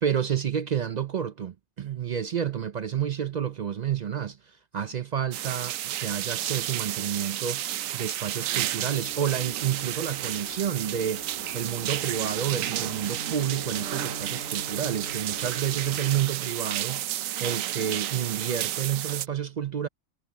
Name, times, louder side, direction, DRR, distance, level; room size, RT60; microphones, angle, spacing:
voice 1, 0.0-7.6 7.9-19.9, right 9 dB, 60° right, 0.4 m, -30 dB
sound 1, 5.3-19.3, right 13 dB, 85° right, 1.0 m, -32 dB
sound 2, 8.9-16.3, left 1 dB, 70° left, 3.4 m, -44 dB
omnidirectional pair, 1.3 m